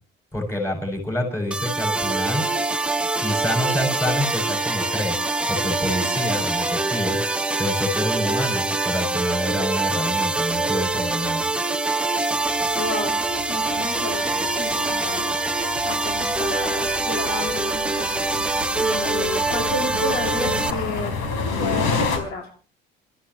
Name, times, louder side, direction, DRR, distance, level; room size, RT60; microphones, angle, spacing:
voice 1, 0.3-2.5 3.2-7.2 7.6-11.4, left 1 dB, 15° left, 1 dB, 6.8 m, -27 dB
sound 1, 1.5-20.7, right 3 dB, 5° right, 0.8 m, -24 dB
sound 2, 12.4-22.2, left 4 dB, 90° left, 4.1 m, -31 dB
voice 2, 12.8-13.2 13.5-15.3 15.8-18.3 18.8-21.1 21.6-22.5, left 2 dB, 55° left, 2 dB, 2.7 m, -31 dB
29.0 x 14.0 x 3.1 m, 0.39 s
cardioid pair, 145°, 20 cm